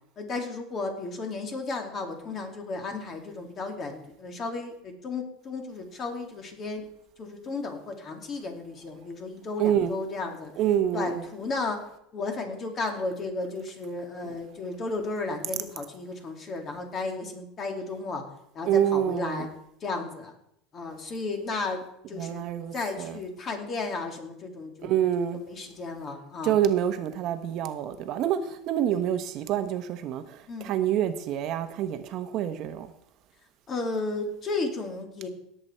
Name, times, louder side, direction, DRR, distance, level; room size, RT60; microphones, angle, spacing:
voice 1, 0.2-6.9 7.2-10.5 10.9-11.9 12.1-18.2 18.5-19.5 19.8-20.3 20.7-22.5 22.7-25.0 25.4-26.6 28.9-29.0 30.5-30.7 33.7-35.3, left 3 dB, 30° left, 2.5 m, -34 dB
voice 2, 9.6-9.9 10.6-11.2 18.7-19.5 22.2-23.2 24.8-25.4 26.4-32.9, right 10 dB, 50° right, 1.0 m, -27 dB
17.5 x 7.9 x 4.5 m
supercardioid pair, 130°, 0 cm